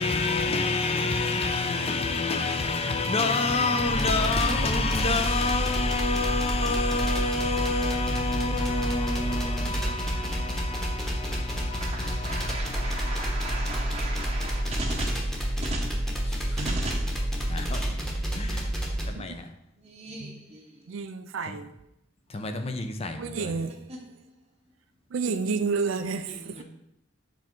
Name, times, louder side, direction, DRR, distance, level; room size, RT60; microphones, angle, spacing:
voice 1, 0.0-15.0 16.2-16.6 17.5-17.8 18.3-18.7 19.1-19.5 21.5-21.6 22.3-23.7, left 3 dB, 30° left, 0.6 m, -28 dB
sound 1, 3.9-19.1, equal, ahead, 1.1 m, -29 dB
voice 2, 11.7-15.3 15.6-15.9 16.6-17.1 19.8-20.6 26.3-26.6, right 2 dB, 30° right, 0.8 m, -36 dB
voice 3, 20.9-21.7 23.2-23.9 25.1-26.6, right 4 dB, 85° right, 0.4 m, -31 dB
7.7 x 3.6 x 4.5 m
head